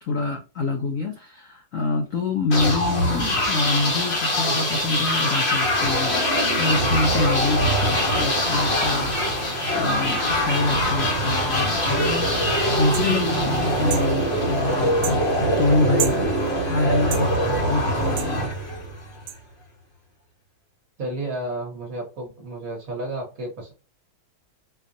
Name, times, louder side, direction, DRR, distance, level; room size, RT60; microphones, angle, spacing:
voice 1, 0.0-6.2 6.6-12.3 12.8-15.2 15.6-16.2 16.7-17.3 17.7-18.5, left 3 dB, 70° left, 2 dB, 0.7 m, -26 dB
sound 1, 2.5-19.2, equal, 45° left, 0.9 m, -23 dB
sound 2, 12.9-13.1 13.9-14.1 15.0-15.2 16.0-16.2 17.1-17.3 18.2-18.3 19.3-19.4, right 11 dB, 85° right, 1.4 m, -29 dB
voice 2, 21.0-23.7, right 1 dB, 50° right, 0 dB, 1.3 m, -32 dB
4.5 x 2.3 x 2.6 m, 0.32 s
omnidirectional pair, 2.3 m